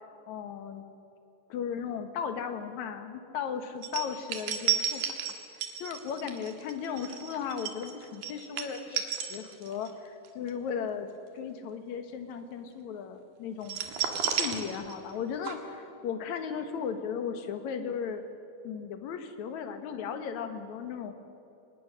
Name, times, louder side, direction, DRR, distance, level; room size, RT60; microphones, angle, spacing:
voice 1, 0.3-0.8 1.5-5.4 5.8-11.1 11.3-13.9 14.4-18.2 18.6-21.1, left 7 dB, 60° left, 8 dB, 2.4 m, -36 dB
sound 1, 3.8-9.9 10.2-10.5 13.6-15.2 15.4-15.5, right 9 dB, 80° right, 3.4 m, -32 dB
24.0 x 20.0 x 6.5 m, 2.8 s
omnidirectional pair, 4.1 m